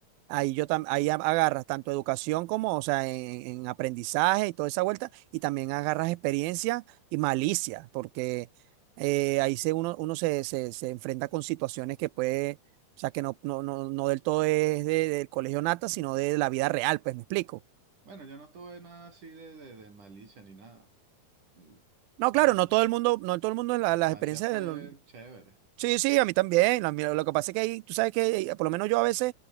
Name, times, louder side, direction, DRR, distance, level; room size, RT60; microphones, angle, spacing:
voice 1, 0.3-6.8 7.1-8.5 9.0-12.6 13.0-17.6 22.2-24.8 25.8-29.3, right 21 dB, 80° right, 2.4 m, -28 dB
voice 2, 18.1-20.9 21.5-21.8 22.3-22.7 23.9-25.6, right 4 dB, 55° right, 7.4 m, -48 dB
omnidirectional pair, 4.2 m